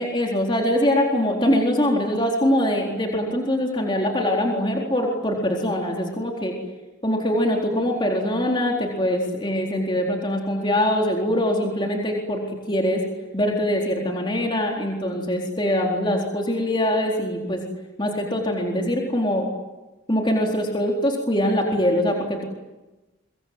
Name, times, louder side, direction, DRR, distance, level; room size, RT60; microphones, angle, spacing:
voice 1, 0.0-6.5 7.0-13.0 13.3-17.6 18.0-19.5 20.1-22.4, left 1 dB, 25° left, 0 dB, 4.1 m, -23 dB
29.5 x 25.5 x 7.9 m, 1.1 s
head